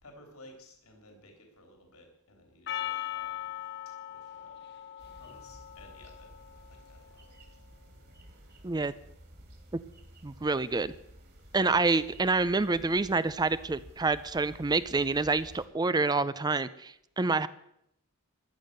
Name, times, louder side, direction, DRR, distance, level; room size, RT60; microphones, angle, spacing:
voice 1, 0.0-3.5 4.1-4.7 5.2-7.2 11.4-11.6, left 1 dB, 75° left, 3 dB, 3.3 m, -56 dB
Percussion, 2.7-7.2, left 12 dB, 50° left, 1.0 m, -40 dB
sound 1, 5.0-15.7, equal, 50° right, 3.1 m, -53 dB
voice 2, 10.2-10.9 11.5-17.5, right 3 dB, 20° right, 15 dB, 0.5 m, -27 dB
14.5 x 11.0 x 6.6 m, 0.77 s
head